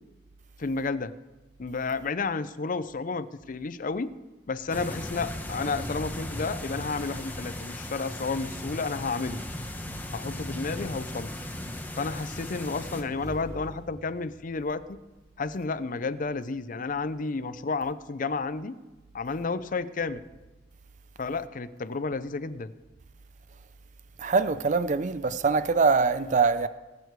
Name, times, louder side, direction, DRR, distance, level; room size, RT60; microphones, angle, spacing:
voice 1, 0.6-1.1 1.6-4.1 4.5-9.4 10.1-11.3 12.0-15.0 15.4-18.7 19.1-20.2 21.2-22.7, left 4 dB, 50° left, 0.6 m, -31 dB
sound 1, 4.7-13.0, left 1 dB, 10° left, 1.1 m, -37 dB
Motorcycle / Engine, 11.9-15.4, equal, 20° right, 1.7 m, -48 dB
voice 2, 24.2-26.7, right 4 dB, 45° right, 0.5 m, -23 dB
19.5 x 8.3 x 4.7 m
head